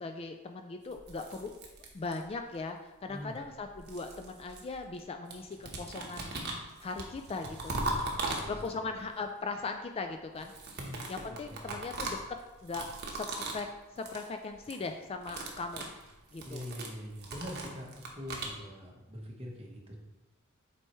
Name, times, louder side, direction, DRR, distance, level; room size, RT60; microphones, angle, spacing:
voice 1, 0.0-1.5 1.9-6.3 6.8-7.8 8.5-10.5 11.1-12.2 12.6-13.7 13.9-15.9 16.3-16.6, left 3 dB, 25° left, 5 dB, 0.3 m, -39 dB
sound 1, 0.9-2.5 3.4-5.0 5.3-8.9 10.3-13.7 14.0-14.3 14.6-14.9 15.2-18.6, right 2 dB, 50° right, 1.1 m, -39 dB
voice 2, 3.1-3.4 8.2-8.8 10.8-11.0 11.5-11.6 16.4-20.0, equal, 30° right, 0 dB, 1.1 m, -43 dB
7.8 x 4.4 x 3.1 m, 1.1 s
head